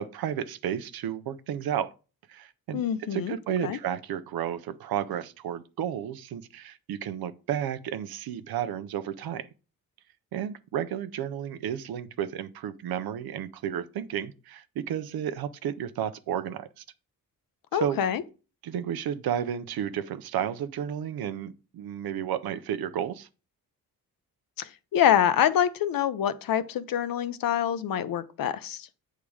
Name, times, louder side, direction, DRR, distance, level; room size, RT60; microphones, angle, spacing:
voice 1, 0.0-1.9 2.3-9.5 10.3-16.8 17.7-18.0 18.6-23.3, right 9 dB, 85° right, 0.6 m, -32 dB
voice 2, 2.7-3.3 3.6-3.8 17.7-18.2 24.6-28.9, left 10 dB, 70° left, 0.7 m, -26 dB
8.5 x 3.7 x 4.7 m
wide cardioid pair, 140°, 36 cm